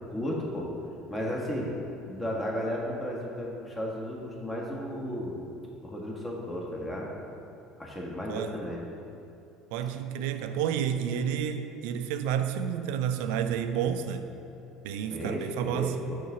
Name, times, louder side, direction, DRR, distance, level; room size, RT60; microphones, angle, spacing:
voice 1, 0.1-0.7 1.1-1.7 2.0-5.4 5.8-7.1 7.8-8.8 9.8-9.9 15.1-16.2, equal, 20° left, 1.4 m, -34 dB
voice 2, 9.7-14.3 14.8-16.0, right 8 dB, 65° right, 0.3 m, -30 dB
6.4 x 3.8 x 5.8 m
figure-of-eight pair, 65°, 0 cm